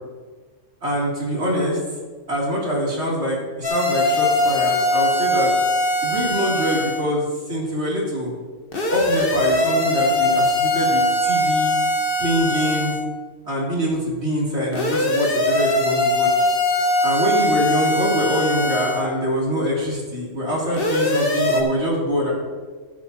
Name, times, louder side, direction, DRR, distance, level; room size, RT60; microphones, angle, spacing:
voice 1, 0.8-1.8 2.3-5.5 6.0-8.3 8.9-11.7 12.2-12.9 13.4-16.5 17.0-22.3, equal, 60° right, -5 dB, 3.2 m, -24 dB
sound 1, 3.6-7.0 8.7-13.0 14.7-19.0 20.7-21.6, left 1 dB, 50° left, 1.4 m, -21 dB
14.5 x 10.0 x 2.8 m, 1.4 s
omnidirectional pair, 1.3 m